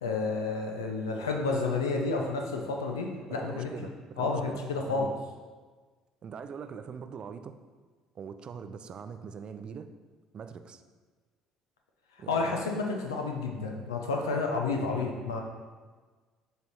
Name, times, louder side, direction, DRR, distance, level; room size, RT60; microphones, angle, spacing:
voice 1, 0.0-3.7 4.2-5.1 12.3-15.4, left 3 dB, 85° left, 1 dB, 0.5 m, -30 dB
voice 2, 3.4-4.6 4.9-5.1 6.2-7.6 8.2-9.9 10.3-10.8 12.2-12.6, right 6 dB, 45° right, 10 dB, 0.4 m, -42 dB
6.8 x 3.4 x 4.1 m, 1.4 s
hypercardioid pair, 55°, 2 cm